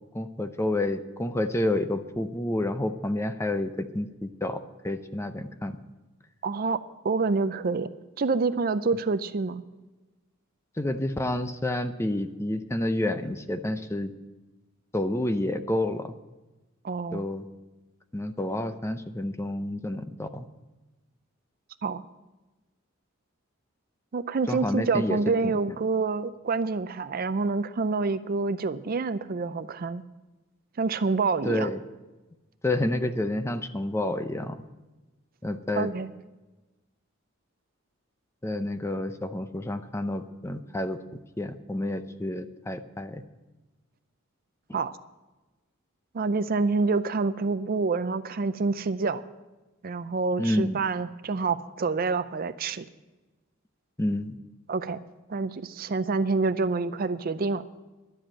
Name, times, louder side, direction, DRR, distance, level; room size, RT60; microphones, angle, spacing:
voice 1, 0.1-5.8 10.8-14.1 14.9-16.2 17.1-17.4 18.1-20.5 24.5-25.2 25.4-25.6 31.4-31.8 32.6-34.6 35.4-35.9 38.4-41.0 41.4-43.2 50.4-50.8 54.0-54.4, left 1 dB, 15° left, 9 dB, 0.5 m, -29 dB
voice 2, 6.4-6.8 7.0-7.9 8.2-9.6 16.8-17.2 21.8-22.0 24.1-30.0 30.8-31.7 35.8-36.1 44.7-45.0 46.1-49.2 49.8-52.8 54.7-55.0 55.3-57.6, right 4 dB, 45° right, 13 dB, 0.4 m, -27 dB
11.5 x 7.8 x 8.7 m, 1.1 s
head